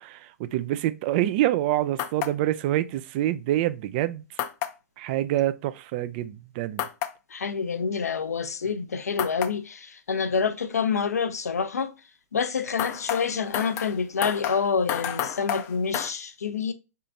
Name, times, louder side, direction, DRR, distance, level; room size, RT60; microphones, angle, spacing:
voice 1, 0.0-4.2 5.0-6.9, right 13 dB, 40° right, 0.4 m, -26 dB
sound 1, 2.0-2.3 4.4-4.7 6.8-7.1 9.2-9.5 12.8-16.1, left 11 dB, 30° left, 0.5 m, -30 dB
voice 2, 7.3-11.9 12.3-16.7, left 6 dB, 80° left, 0.6 m, -27 dB
5.6 x 3.7 x 2.5 m
hypercardioid pair, 120°, 8 cm